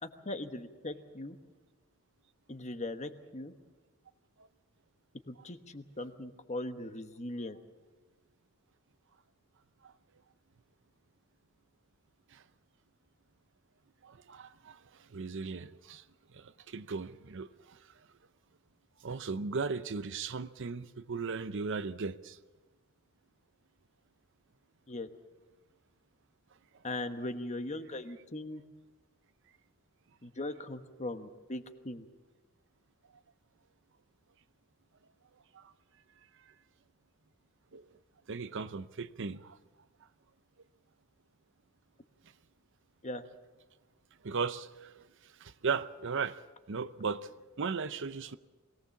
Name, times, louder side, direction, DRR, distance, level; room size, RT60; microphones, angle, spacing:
voice 1, 0.0-1.4 2.5-3.5 5.3-7.6 24.9-25.1 26.8-28.6 30.2-32.0 43.0-43.2, left 2 dB, 35° left, 1.2 m, -39 dB
voice 2, 14.0-14.8 15.1-16.0 16.3-17.8 19.0-22.4 35.5-35.6 37.7-37.9 38.3-39.6 44.2-44.9 45.4-46.4 46.7-47.3 47.6-48.4, right 5 dB, 60° right, 0.7 m, -37 dB
22.0 x 18.0 x 7.1 m
head